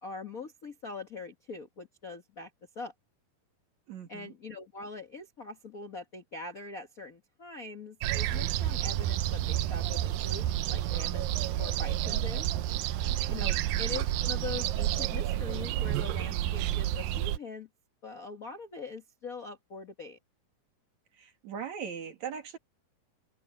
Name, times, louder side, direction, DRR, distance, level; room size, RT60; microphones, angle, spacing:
voice 1, 0.0-2.5 2.7-2.9 4.1-11.3 11.6-12.5 13.3-17.7 18.0-20.2, left 4 dB, 85° left, 0.7 m, -42 dB
voice 2, 3.9-4.3 13.4-13.9 21.1-22.6, right 7 dB, 55° right, 3.3 m, -40 dB
sound 1, 8.0-17.4, right 13 dB, 80° right, 2.4 m, -30 dB
omnidirectional pair, 4.1 m